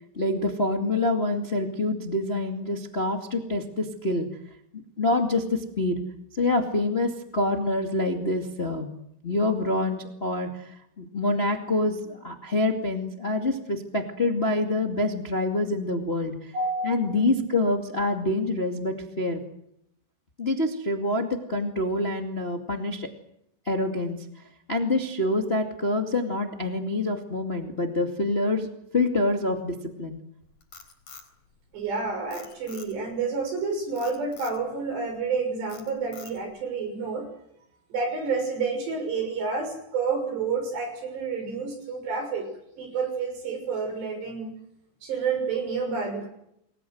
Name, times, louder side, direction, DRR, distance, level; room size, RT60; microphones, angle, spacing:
voice 1, 0.1-4.3 4.7-6.0 6.3-8.9 9.2-16.5 16.8-19.4 20.4-23.1 23.6-24.2 24.7-28.7 28.9-30.2, left 2 dB, 25° left, 3 dB, 1.4 m, -26 dB
voice 2, 16.5-17.4 31.7-37.3 37.9-42.5 42.8-44.5 45.0-46.3, right 4 dB, 75° right, 6 dB, 8.5 m, -29 dB
Frog, 30.4-31.9 32.3-33.2 34.0-34.6 35.1-35.4 35.7-36.6, left 5 dB, 50° left, 5.5 m, -47 dB
29.5 x 21.5 x 7.9 m, 0.79 s
omnidirectional pair, 4.9 m